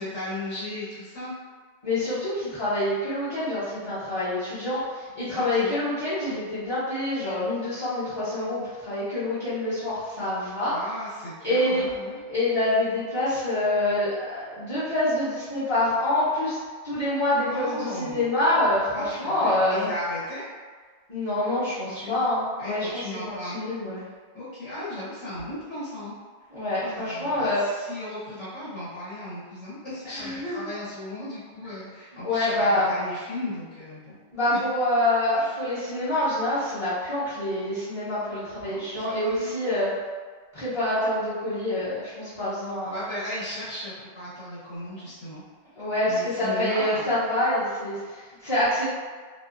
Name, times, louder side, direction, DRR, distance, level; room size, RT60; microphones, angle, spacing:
voice 1, 0.0-1.3 5.3-5.8 10.7-12.2 17.4-18.2 18.9-20.4 21.7-22.2 22.6-23.7 24.3-26.1 26.8-34.1 34.5-34.6 38.6-39.5 42.8-45.4 46.0-47.1, left 1 dB, 90° left, -12 dB, 1.4 m, -36 dB
voice 2, 1.8-10.8 11.4-11.9 12.3-16.6 16.8-19.9 21.1-24.0 26.5-27.7 30.0-30.6 32.2-32.9 34.3-40.0 40.5-43.0 45.8-48.9, left 1 dB, 35° left, -15 dB, 0.7 m, -26 dB
2.7 x 2.3 x 2.4 m, 1.5 s
omnidirectional pair, 1.2 m